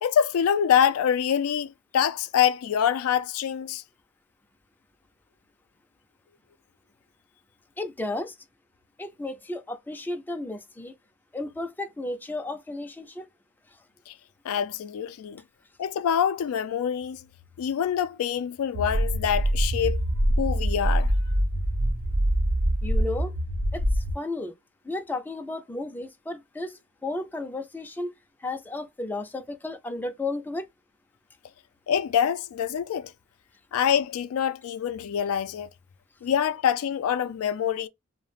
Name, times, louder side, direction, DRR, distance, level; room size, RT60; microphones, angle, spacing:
voice 1, 0.0-3.8 14.1-14.2 14.4-15.4 15.8-17.2 17.6-20.0 20.4-21.1 31.9-33.1 33.7-35.7 36.2-37.9, left 8 dB, 85° left, 0.3 m, -25 dB
voice 2, 7.8-8.4 9.0-10.9 11.3-13.3 22.8-23.4 23.7-24.5 24.8-28.1 28.4-30.7, left 2 dB, 10° left, 0.4 m, -33 dB
sound 1, 18.7-24.1, right 1 dB, 70° right, 0.6 m, -24 dB
2.3 x 2.1 x 3.1 m
head